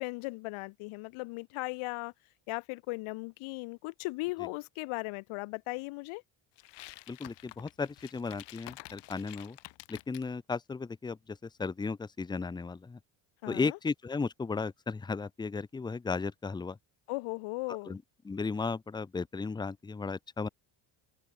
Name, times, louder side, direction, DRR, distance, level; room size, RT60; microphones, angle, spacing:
voice 1, 0.0-2.1 2.5-6.2 13.4-13.8 17.1-18.0, left 24 dB, 85° left, 3.6 m, -37 dB
sound 1, 6.6-10.3, left 19 dB, 60° left, 2.0 m, -50 dB
voice 2, 7.1-9.6 9.9-13.0 13.5-16.8 17.9-18.0 18.2-20.5, left 4 dB, 10° left, 0.8 m, -35 dB
open air
cardioid pair, 175°, 48 cm